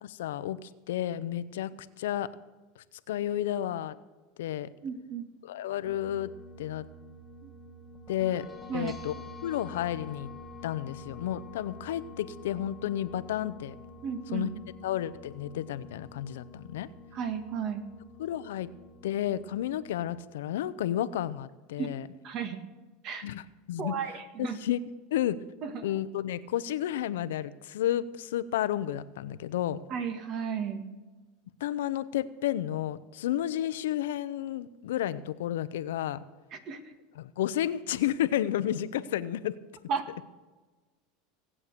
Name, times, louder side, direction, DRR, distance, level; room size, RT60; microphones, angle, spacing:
voice 1, 0.0-1.7 2.0-2.3 3.1-3.9 4.4-4.7 5.4-6.3 6.6-6.9 8.1-8.5 8.7-9.1 9.4-10.3 10.6-13.7 14.3-14.5 14.8-16.9 18.2-18.7 19.0-22.1 23.2-23.4 23.7-23.9 24.4-24.8 25.1-25.4 25.8-29.8 31.6-36.2 37.2-39.6, left 12 dB, 85° left, 15 dB, 0.7 m, -31 dB
voice 2, 4.8-5.3 7.4-7.5 8.7-8.9 14.0-14.5 17.1-17.8 21.8-21.9 22.2-22.6 23.0-23.3 23.8-24.6 25.6-25.9 29.9-30.9 36.5-36.8 39.9-40.1, right 6 dB, 45° right, 9 dB, 1.9 m, -34 dB
sound 1, 5.8-20.1, left 2 dB, 5° right, 1.6 m, -48 dB
18.5 x 8.6 x 6.8 m, 1.2 s
supercardioid pair, 130°, 0 cm